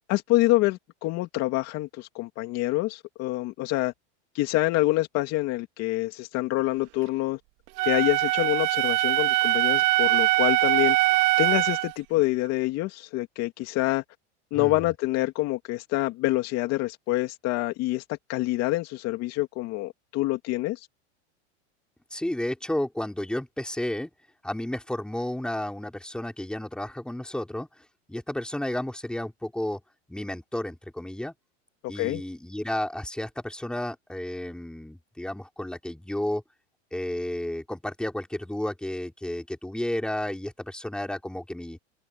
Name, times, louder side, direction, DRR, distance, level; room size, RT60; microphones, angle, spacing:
voice 1, 0.1-3.9 4.3-7.4 7.8-11.0 11.4-14.0 14.5-18.0 18.3-20.9 32.0-32.2, left 18 dB, 45° left, 2.6 m, -26 dB
Wind instrument woodwind instrument, 7.8-11.9, right 19 dB, 55° right, 2.9 m, -22 dB
voice 2, 14.5-14.9 22.1-24.1 24.4-29.8 30.1-31.3 31.9-36.4 36.9-41.8, left 1 dB, ahead, 4.9 m, -32 dB
open air
supercardioid pair, 135°, 35 cm